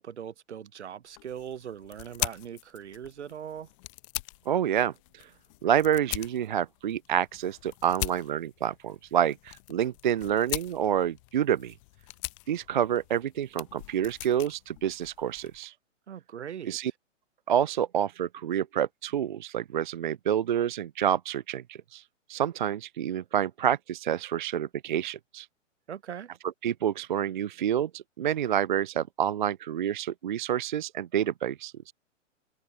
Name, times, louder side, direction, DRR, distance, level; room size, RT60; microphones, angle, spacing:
voice 1, 0.0-3.7 16.1-16.8 25.9-26.3, right 9 dB, 60° right, 0.9 m, -40 dB
sound 1, 1.1-15.7, left 24 dB, 25° left, 0.8 m, -41 dB
voice 2, 4.5-5.3 5.6-11.7 12.5-15.7 16.7-16.9 17.5-22.0 22.3-25.5 26.6-31.9, right 9 dB, 40° right, 0.4 m, -28 dB
figure-of-eight pair, 115°, 39 cm